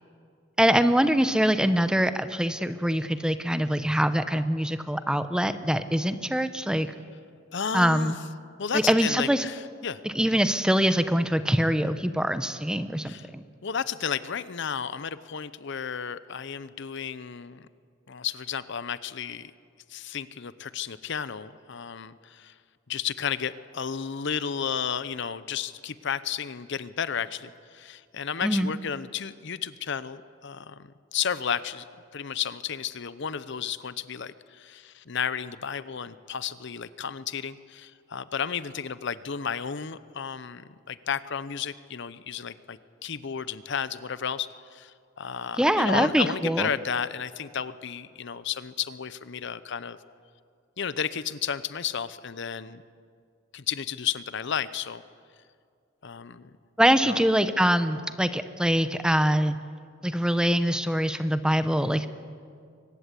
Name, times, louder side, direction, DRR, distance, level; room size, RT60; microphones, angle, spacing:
voice 1, 0.6-6.9 7.7-8.2 8.7-9.4 10.0-13.4 28.4-28.7 45.6-46.7 56.8-59.6 60.0-62.1, equal, 5° right, 11 dB, 0.8 m, -24 dB
voice 2, 7.5-8.1 8.6-10.0 13.0-13.3 13.6-17.7 18.1-19.5 19.9-22.5 22.9-31.8 32.1-50.0 50.8-52.8 53.5-55.0 56.0-56.4 57.0-57.2, left 7 dB, 60° left, 15 dB, 0.7 m, -33 dB
23.5 x 19.5 x 8.3 m, 2.2 s
head